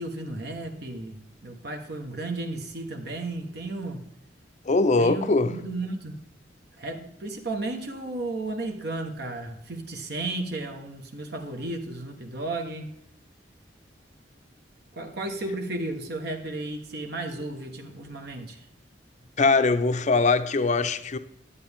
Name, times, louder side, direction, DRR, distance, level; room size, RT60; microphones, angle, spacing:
voice 1, 0.0-4.0 5.0-6.2 6.8-12.9 14.9-18.6, right 2 dB, 60° right, 1.2 m, -34 dB
voice 2, 4.7-5.5 19.4-21.2, left 3 dB, 40° left, 0.5 m, -22 dB
11.5 x 8.3 x 3.5 m
head